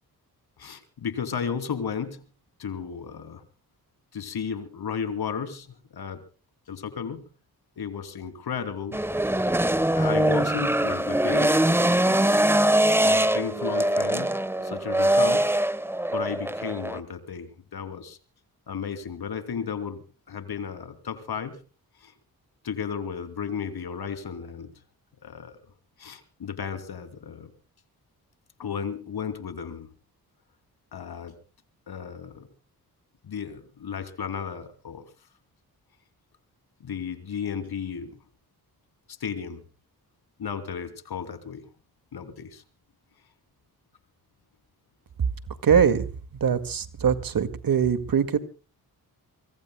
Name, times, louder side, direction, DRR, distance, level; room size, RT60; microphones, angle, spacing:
voice 1, 0.6-2.3 2.6-3.4 4.1-6.2 6.7-7.3 7.8-9.0 9.9-12.4 13.0-15.5 16.1-18.2 18.7-21.6 22.0-22.1 22.6-24.7 25.2-25.6 26.0-27.5 28.6-29.9 30.9-31.4 31.9-32.5 33.2-35.1 36.8-38.2 39.1-39.6 40.4-41.7 42.1-42.6, left 7 dB, 80° left, 11 dB, 2.8 m, -34 dB
sound 1, 8.9-17.0, right 1 dB, 5° right, 1.1 m, -22 dB
voice 2, 45.6-46.1 46.4-48.4, right 7 dB, 65° right, 13 dB, 2.0 m, -22 dB
25.5 x 23.5 x 2.2 m, 0.37 s
cardioid pair, 70°, 37 cm